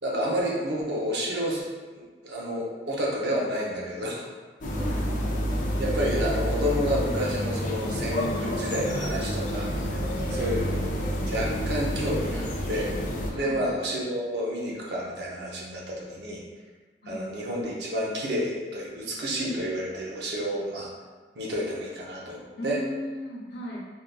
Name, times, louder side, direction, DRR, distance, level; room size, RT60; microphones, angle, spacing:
voice 1, 0.0-4.3 5.8-10.0 10.3-10.8 11.3-12.9 13.3-16.4 17.1-20.9 21.3-22.8, equal, 70° right, -3 dB, 0.7 m, -30 dB
sound 1, 4.6-13.3, equal, 45° left, 0.4 m, -29 dB
voice 2, 4.8-5.1 10.3-10.8 13.3-13.6 17.0-17.4 22.6-23.8, equal, 70° left, -4 dB, 0.8 m, -36 dB
3.6 x 2.5 x 2.3 m, 1.4 s
head